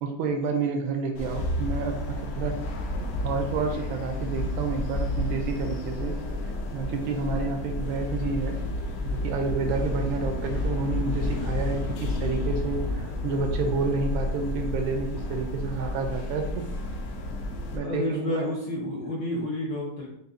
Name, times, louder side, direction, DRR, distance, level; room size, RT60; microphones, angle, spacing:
voice 1, 0.0-2.6 2.9-6.2 6.7-8.6 9.0-16.7 17.7-18.5, right 4 dB, 80° right, 4 dB, 1.3 m, -30 dB
sound 1, 1.1-17.8, left 1 dB, 85° left, 0.8 m, -31 dB
voice 2, 17.8-20.1, left 1 dB, 65° left, -6 dB, 1.4 m, -30 dB
6.3 x 2.6 x 2.5 m, 0.79 s
omnidirectional pair, 2.3 m